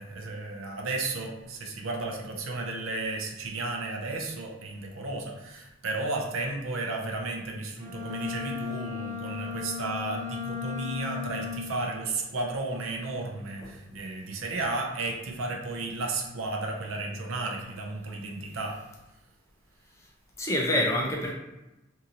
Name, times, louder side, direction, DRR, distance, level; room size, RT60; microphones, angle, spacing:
voice 1, 0.0-18.8, right 2 dB, 80° right, 1 dB, 0.6 m, -33 dB
Bowed string instrument, 7.8-11.9, left 7 dB, 50° right, 1.3 m, -36 dB
voice 2, 20.4-21.3, left 1 dB, 15° left, -2 dB, 0.4 m, -27 dB
2.9 x 2.7 x 2.5 m, 0.98 s
head